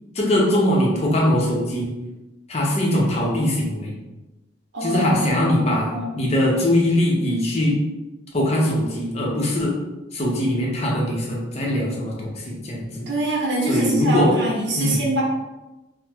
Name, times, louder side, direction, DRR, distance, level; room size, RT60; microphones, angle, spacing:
voice 1, 0.1-1.9 2.5-3.9 4.8-7.8 8.3-9.8 10.1-13.1 13.7-14.4 14.8-15.0, left 1 dB, 35° left, -2 dB, 0.6 m, -21 dB
voice 2, 4.7-6.1 13.1-15.2, right 1 dB, 65° right, -3 dB, 0.8 m, -24 dB
2.9 x 2.0 x 3.4 m, 1.1 s
head